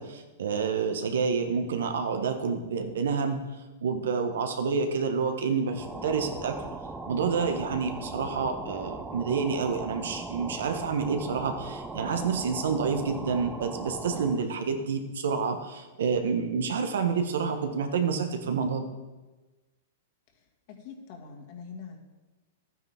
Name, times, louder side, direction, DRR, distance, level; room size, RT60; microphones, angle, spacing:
voice 1, 0.0-3.4 3.8-6.6 7.1-18.9, right 5 dB, 80° right, 6 dB, 1.4 m, -28 dB
sound 1, 5.6-14.5, right 3 dB, 10° right, 0.6 m, -39 dB
voice 2, 20.7-22.0, left 6 dB, 50° left, 1 dB, 2.3 m, -43 dB
12.0 x 9.2 x 3.7 m, 1.2 s
hypercardioid pair, 145°, 0 cm